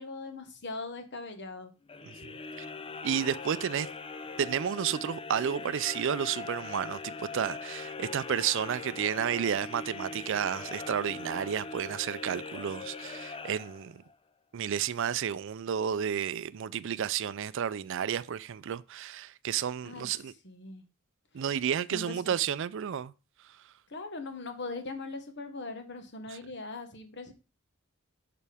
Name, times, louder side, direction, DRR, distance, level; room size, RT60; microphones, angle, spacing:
voice 1, 0.0-1.7 19.8-20.1 20.4-20.8 21.4-21.5 21.9-22.3 23.9-27.3, left 3 dB, 60° left, 1.3 m, -40 dB
sound 1, 1.9-14.1, left 4 dB, 25° left, 0.5 m, -41 dB
voice 2, 2.0-2.7 3.0-3.9 4.4-14.0 14.5-20.3 21.3-23.1 26.3-26.4, right 8 dB, 65° right, 0.4 m, -31 dB
6.7 x 6.0 x 3.4 m
head